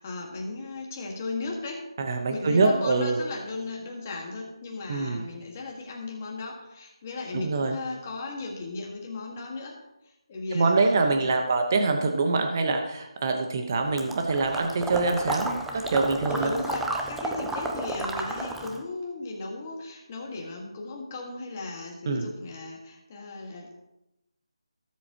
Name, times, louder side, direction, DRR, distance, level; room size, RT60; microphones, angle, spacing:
voice 1, 0.0-1.9 2.3-10.9 11.2-11.3 14.0-14.2 16.3-23.8, left 3 dB, 25° left, 0 dB, 1.7 m, -36 dB
voice 2, 2.0-3.2 4.9-5.3 7.3-7.8 10.5-16.5 22.1-22.3, right 3 dB, 35° right, 4 dB, 1.0 m, -25 dB
Water / Liquid, 14.0-18.8, right 2 dB, ahead, 0.3 m, -32 dB
17.0 x 7.5 x 3.0 m, 0.91 s
figure-of-eight pair, 170°, 3 cm